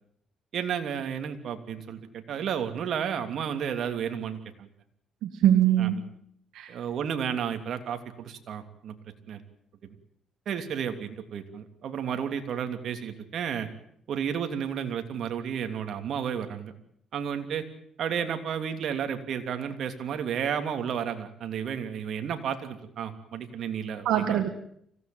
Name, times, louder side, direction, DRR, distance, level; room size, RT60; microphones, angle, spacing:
voice 1, 0.5-4.7 5.8-6.0 6.7-9.0 9.3-9.4 10.5-13.7 14.1-16.7 17.1-17.7 18.0-24.5, right 8 dB, 65° right, 6 dB, 3.0 m, -32 dB
voice 2, 5.2-6.0 6.5-6.8 24.1-24.5, right 11 dB, 85° right, 7 dB, 1.9 m, -22 dB
25.5 x 17.0 x 9.3 m, 0.71 s
cardioid pair, 90°, 0 cm